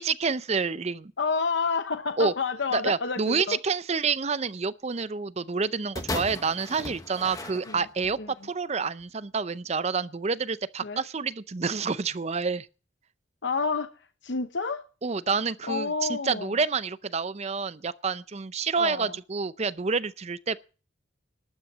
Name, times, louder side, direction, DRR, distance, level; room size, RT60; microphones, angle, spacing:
voice 1, 0.0-1.1 2.2-2.3 2.7-8.2 8.4-12.7 15.0-20.6, right 5 dB, 35° right, 0.5 m, -28 dB
voice 2, 1.2-3.6 7.7-7.8 8.2-8.3 10.8-11.0 13.4-13.9 14.2-14.8 15.7-16.5 18.8-19.1, left 4 dB, 65° left, 0.8 m, -29 dB
sound 1, 5.9-8.2 9.0-9.1, left 2 dB, 20° left, 1.2 m, -36 dB
12.0 x 9.0 x 7.2 m
head